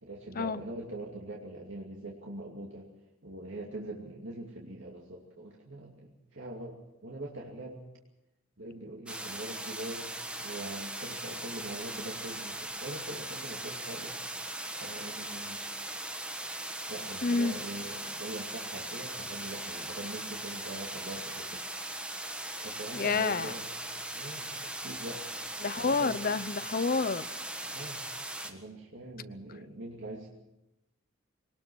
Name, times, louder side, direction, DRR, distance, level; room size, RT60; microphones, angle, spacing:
voice 1, 0.0-2.9 3.2-7.8 8.6-15.7 16.6-21.8 22.6-23.7 24.1-25.2 25.8-26.4 26.9-27.1 27.6-28.0 28.4-30.3, right 1 dB, 60° right, -1 dB, 2.6 m, -43 dB
sound 1, 9.1-28.5, right 1 dB, 5° right, 1.5 m, -39 dB
voice 2, 17.2-17.5 22.9-23.5 25.6-27.3, left 4 dB, 45° left, 14 dB, 0.8 m, -29 dB
22.5 x 19.5 x 6.3 m, 0.92 s
head